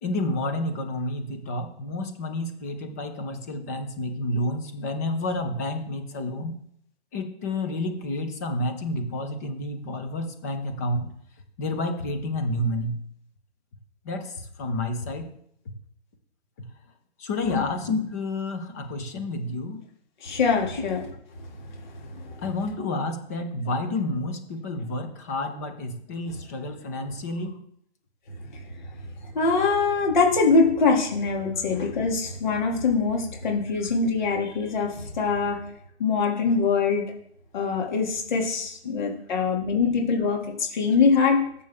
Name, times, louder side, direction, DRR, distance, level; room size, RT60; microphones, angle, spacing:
voice 1, 0.0-6.6 7.1-11.1 11.6-12.9 14.0-15.3 17.2-19.8 22.4-27.6 39.4-39.5, left 1 dB, 15° left, 5 dB, 0.8 m, -30 dB
voice 2, 20.2-21.0 21.7-22.4 29.3-35.6 36.0-37.0 37.5-41.4, left 4 dB, 45° left, 0 dB, 2.6 m, -23 dB
13.0 x 6.9 x 3.6 m, 0.68 s
hypercardioid pair, 165°, 33 cm